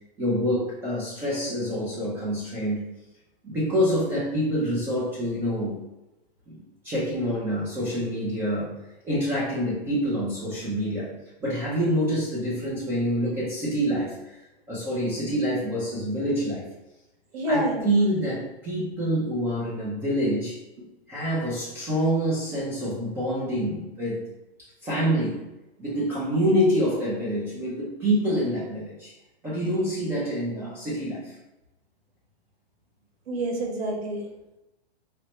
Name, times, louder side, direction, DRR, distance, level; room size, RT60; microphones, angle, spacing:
voice 1, 0.2-2.8 3.4-5.8 6.5-11.1 11.4-14.3 14.7-16.7 17.5-20.6 21.1-24.2 24.8-25.4 25.8-29.1 29.4-31.3, equal, 10° right, -7 dB, 0.4 m, -26 dB
voice 2, 17.3-18.0 33.3-34.3, right 1 dB, 80° right, 0 dB, 1.3 m, -28 dB
4.3 x 2.0 x 2.9 m, 0.97 s
hypercardioid pair, 145°, 30 cm